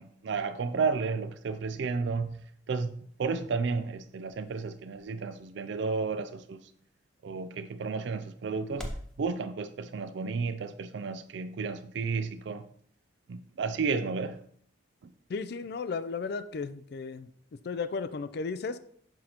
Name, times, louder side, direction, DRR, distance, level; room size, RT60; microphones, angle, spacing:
voice 1, 0.0-2.4 2.7-2.9 3.2-6.6 7.2-8.8 9.2-12.6 13.3-14.4, right 4 dB, 65° right, 0.4 m, -32 dB
sound 1, 2.9-9.2, equal, 5° left, 0.6 m, -48 dB
voice 2, 15.3-17.3 17.6-18.8, left 4 dB, 55° left, 0.4 m, -34 dB
6.4 x 6.0 x 2.9 m
head